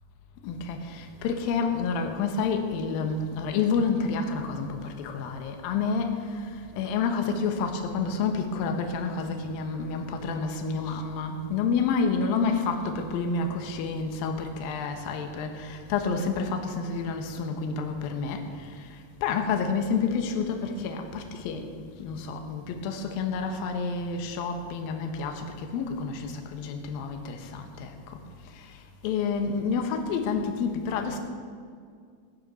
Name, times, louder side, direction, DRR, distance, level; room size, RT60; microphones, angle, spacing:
voice 1, 0.4-19.0 19.2-28.2 28.5-31.2, left 5 dB, 70° left, 5 dB, 2.7 m, -29 dB
17.0 x 10.0 x 5.6 m, 2.1 s
omnidirectional pair, 4.9 m